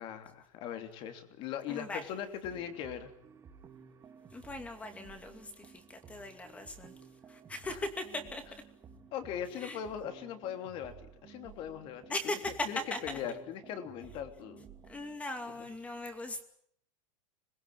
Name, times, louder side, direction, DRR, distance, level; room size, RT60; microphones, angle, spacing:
voice 1, 0.0-3.1 9.1-14.7 15.6-15.7, left 9 dB, 30° left, 7 dB, 3.1 m, -40 dB
voice 2, 1.7-2.1 4.3-6.9 7.3-8.5 9.6-9.8 12.1-13.2 14.9-16.4, left 2 dB, 10° left, 7 dB, 2.6 m, -39 dB
sound 1, 2.4-15.2, right 7 dB, 15° right, 2.7 m, -55 dB
26.5 x 21.0 x 8.7 m, 0.68 s
supercardioid pair, 170°, 17 cm